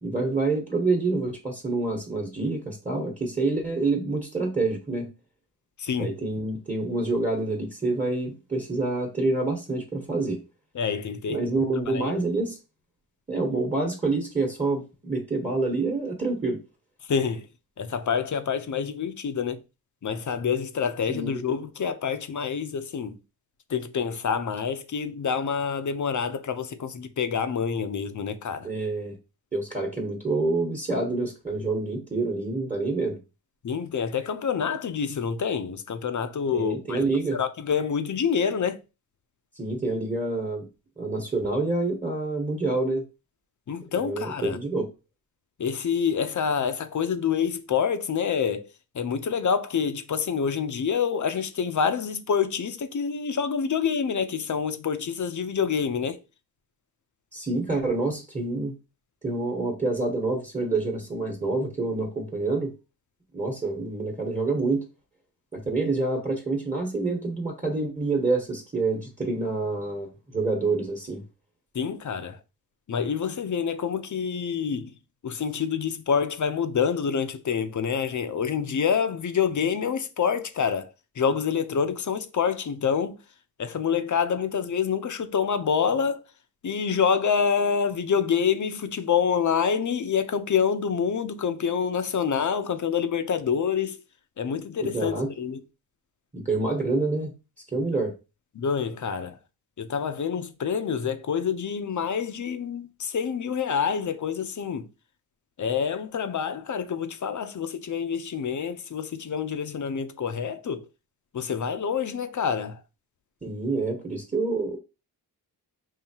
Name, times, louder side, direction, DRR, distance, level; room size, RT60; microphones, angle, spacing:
voice 1, 0.0-5.1 6.0-10.4 11.3-12.6 13.3-16.6 21.1-21.4 28.6-29.2 29.5-33.2 36.5-37.4 39.5-40.7 41.0-43.0 43.9-44.9 57.3-58.7 59.2-62.7 63.3-64.8 65.5-71.2 94.8-95.3 96.3-97.3 97.7-98.1 113.4-114.8, right 3 dB, 20° right, 1.3 m, -27 dB
voice 2, 5.8-6.1 10.7-11.4 11.9-12.1 17.1-17.5 17.8-19.6 20.0-23.2 23.7-28.7 33.6-37.0 37.3-38.8 43.7-44.6 45.6-48.7 48.9-56.2 71.7-72.4 72.9-74.9 75.2-80.9 81.2-83.2 83.6-86.2 86.6-94.0 94.4-95.6 98.6-99.4 99.8-104.9 105.6-110.8 111.3-112.8, left 6 dB, 50° left, 0.7 m, -27 dB
5.6 x 2.8 x 2.9 m
cardioid pair, 80°, 39 cm